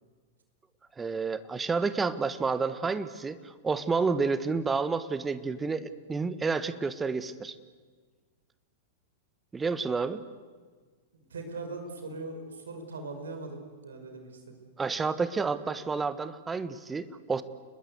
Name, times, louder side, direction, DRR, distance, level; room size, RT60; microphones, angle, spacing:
voice 1, 1.0-7.5 9.5-10.2 14.8-17.4, right 4 dB, 15° right, 13 dB, 1.3 m, -30 dB
voice 2, 11.3-14.6, right 3 dB, 70° right, 6 dB, 5.1 m, -40 dB
29.5 x 21.5 x 8.2 m, 1.5 s
figure-of-eight pair, 95°, 0 cm